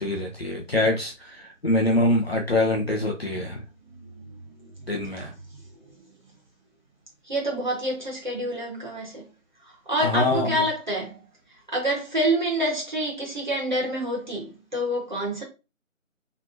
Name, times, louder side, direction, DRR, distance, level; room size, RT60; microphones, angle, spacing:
voice 1, 0.0-3.6 4.9-5.3 10.0-10.6, left 1 dB, 50° left, 0.8 m, -24 dB
voice 2, 4.2-4.7 5.0-5.3 7.2-9.2 9.6-11.2 11.7-15.4, right 1 dB, 35° right, 1.5 m, -27 dB
4.1 x 3.2 x 2.6 m
figure-of-eight pair, 180°, 40 cm